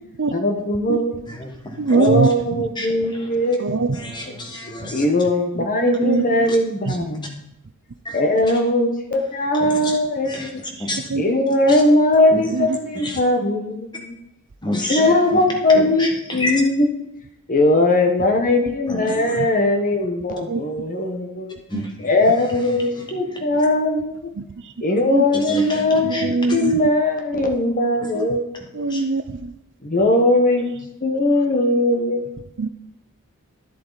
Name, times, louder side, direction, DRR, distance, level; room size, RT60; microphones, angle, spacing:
voice 1, 0.3-1.1 1.9-3.8 4.9-7.4 8.1-10.6 11.2-14.1 14.9-16.9 17.5-21.5 22.0-24.3 24.8-28.9 29.8-30.7 31.0-32.3, left 1 dB, 40° left, 4 dB, 1.2 m, -19 dB
voice 2, 1.3-1.9 2.8-3.3 3.9-5.0 6.5-6.6 6.9-7.0 8.0-8.2 9.6-10.0 10.2-10.5 10.8-11.0 11.7-11.8 12.3-12.5 12.9-13.2 14.6-15.4 15.7-16.5 18.9-19.4 21.7-22.1 22.4-23.6 25.3-26.7 28.9-29.0, left 1 dB, 20° left, 1 dB, 1.6 m, -30 dB
voice 3, 1.8-2.6 3.6-4.0 4.8-5.0 5.8-6.5 6.9-7.0 10.8-10.9 11.1-11.2 12.5-12.8 19.3-19.5 20.5-20.6 21.7-21.8 24.4-24.7 25.1-25.2 26.0-26.8 28.1-28.3 28.7-29.5 32.6-32.7, right 3 dB, 55° right, 10 dB, 0.6 m, -22 dB
11.0 x 7.6 x 4.1 m, 0.83 s
head